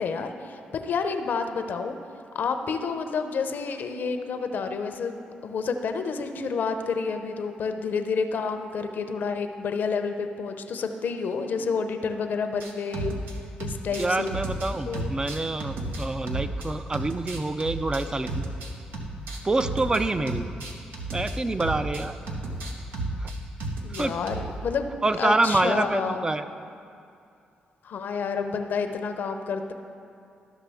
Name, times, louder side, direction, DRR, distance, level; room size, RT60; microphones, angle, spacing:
voice 1, 0.0-2.0 2.3-13.1 13.6-14.3 14.8-15.1 23.8-24.8 25.2-26.3 27.8-29.7, left 5 dB, 65° left, 7 dB, 0.6 m, -29 dB
sound 1, 12.6-13.3 13.6-16.7 16.9-20.0 20.3-24.6, right 2 dB, 80° right, 0.9 m, -33 dB
voice 2, 14.0-18.4 19.4-20.5 21.1-22.2 23.2-23.3 24.0-24.1 25.0-26.4, right 2 dB, 25° right, 10 dB, 0.4 m, -26 dB
13.0 x 5.8 x 3.5 m, 2.5 s
supercardioid pair, 60°, 3 cm